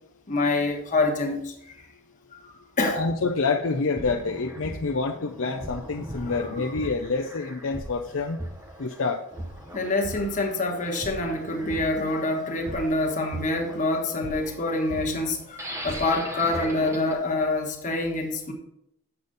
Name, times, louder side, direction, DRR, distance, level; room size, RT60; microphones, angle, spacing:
voice 1, 0.3-1.7 2.4-3.0 6.3-6.4 9.7-18.5, left 2 dB, 35° left, 1 dB, 1.4 m, -26 dB
voice 2, 2.9-8.4 8.8-9.2, left 4 dB, 60° left, 1 dB, 0.6 m, -27 dB
sound 1, 3.6-17.1, right 1 dB, 10° right, 0.8 m, -39 dB
8.0 x 7.0 x 4.0 m, 0.78 s
head